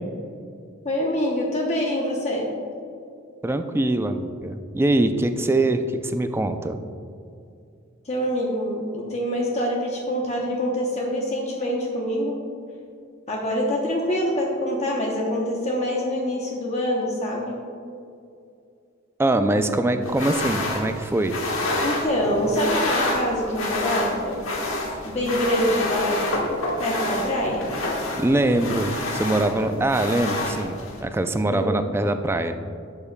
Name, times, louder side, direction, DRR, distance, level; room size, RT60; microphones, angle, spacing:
voice 1, 0.8-2.5 8.0-12.3 13.3-17.6 21.8-24.4 25.0-26.3 26.8-27.7 31.5-31.8, equal, 35° left, -2 dB, 0.9 m, -25 dB
voice 2, 3.4-6.8 19.2-21.3 28.2-32.5, right 2 dB, 10° right, 8 dB, 0.3 m, -23 dB
sound 1, 20.0-31.0, left 2 dB, 90° left, 1.3 m, -28 dB
11.5 x 7.1 x 2.2 m, 2.4 s
head